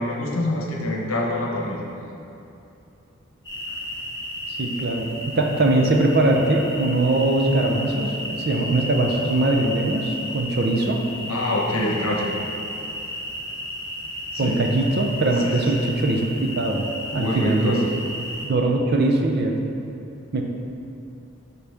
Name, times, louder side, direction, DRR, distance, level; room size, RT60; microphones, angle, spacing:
voice 1, 0.0-1.8 11.3-12.3 14.3-14.5 15.4-15.7 17.1-17.8, left 1 dB, 75° left, -2 dB, 1.1 m, -25 dB
sound 1, 3.4-18.5, left 1 dB, 20° left, 1.7 m, -33 dB
voice 2, 4.6-11.0 14.4-16.8 17.1-17.8 18.5-19.6 20.3-20.4, right 2 dB, 50° right, 1 dB, 0.6 m, -21 dB
11.5 x 4.2 x 3.5 m, 2.8 s
head